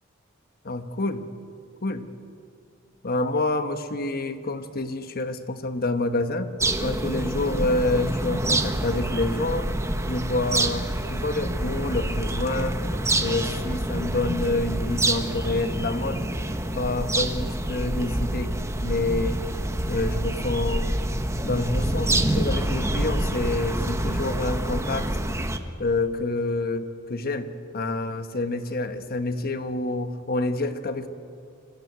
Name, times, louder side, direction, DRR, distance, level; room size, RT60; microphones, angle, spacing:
voice 1, 0.6-1.3 1.8-2.0 3.0-6.5 6.8-9.7 10.1-12.8 13.2-16.2 16.7-18.5 18.8-19.4 19.9-20.9 21.4-25.1 25.8-31.1, left 2 dB, 50° left, 8 dB, 1.3 m, -27 dB
sound 1, 6.6-25.6, right 1 dB, 15° right, 1.1 m, -27 dB
26.0 x 15.5 x 9.4 m, 2.4 s
head